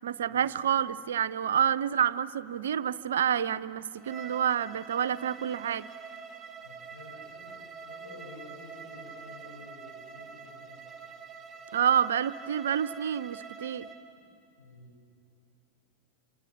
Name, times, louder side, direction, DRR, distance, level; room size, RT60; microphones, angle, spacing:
voice 1, 0.0-5.9 11.7-13.9, right 9 dB, 60° right, 16 dB, 0.6 m, -28 dB
Bowed string instrument, 4.0-14.0, right 5 dB, 15° right, 4.0 m, -46 dB
voice 2, 6.6-7.6 7.9-10.9 14.6-14.9, left 2 dB, 70° left, -2 dB, 5.9 m, -50 dB
27.5 x 27.5 x 7.3 m, 2.5 s
figure-of-eight pair, 90°, 0 cm